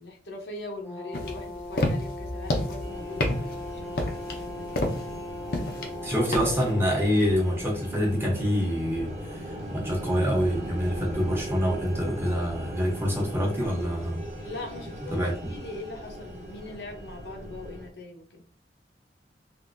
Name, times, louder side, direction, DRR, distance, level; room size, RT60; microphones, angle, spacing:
voice 1, 0.0-4.9 14.4-15.2 15.5-18.4, left 2 dB, 80° left, 0.9 m, -41 dB
Brass instrument, 0.8-7.1, left 2 dB, 10° left, 0.5 m, -39 dB
sound 1, 1.1-6.7, left 1 dB, 55° left, 0.6 m, -30 dB
sound 2, 2.8-17.9, right 1 dB, 35° right, 1.1 m, -39 dB
voice 2, 6.0-14.3 15.1-15.5, equal, 15° right, 0.9 m, -26 dB
3.6 x 2.6 x 2.6 m
head